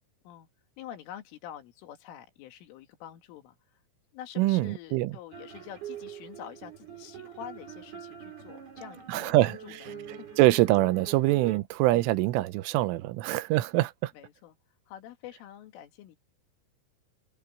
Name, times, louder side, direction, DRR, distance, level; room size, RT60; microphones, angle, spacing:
voice 1, 0.8-3.8 4.1-10.4 14.1-14.6 14.9-16.2, left 11 dB, 90° left, 4.6 m, -46 dB
voice 2, 4.4-5.2 9.1-9.6 10.4-14.1, right 17 dB, 90° right, 3.4 m, -24 dB
sound 1, 5.3-11.6, right 7 dB, 55° right, 8.6 m, -44 dB
omnidirectional pair, 5.5 m